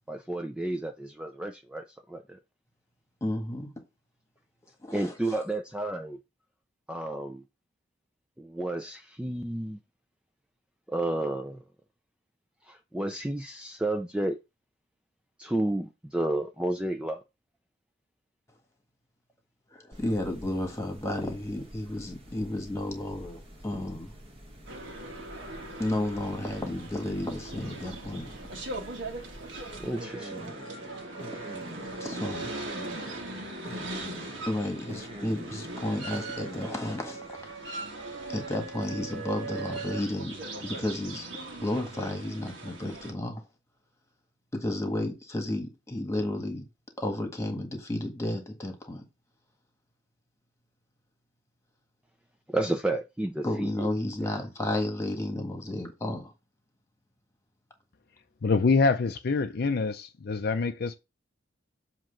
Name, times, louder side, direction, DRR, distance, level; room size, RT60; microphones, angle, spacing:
voice 1, 0.1-2.4 4.9-6.2 6.9-7.4 8.4-9.8 10.9-11.6 12.7-14.4 15.4-17.2 29.8-30.5 52.5-53.9 54.2-54.4, right 1 dB, 5° right, 0.4 m, -31 dB
voice 2, 3.2-3.7 4.8-5.1 19.8-24.1 25.8-28.3 32.0-32.5 34.5-37.5 38.3-40.3 40.6-41.3 41.6-43.4 44.5-46.7 47.0-49.0 53.4-56.3, left 1 dB, 15° left, 1.6 m, -32 dB
sound 1, 19.9-37.3, equal, 30° right, 1.4 m, -46 dB
sound 2, 24.7-43.1, right 2 dB, 70° right, 1.5 m, -40 dB
voice 3, 58.4-61.0, left 4 dB, 55° left, 0.5 m, -25 dB
7.5 x 3.0 x 5.8 m
head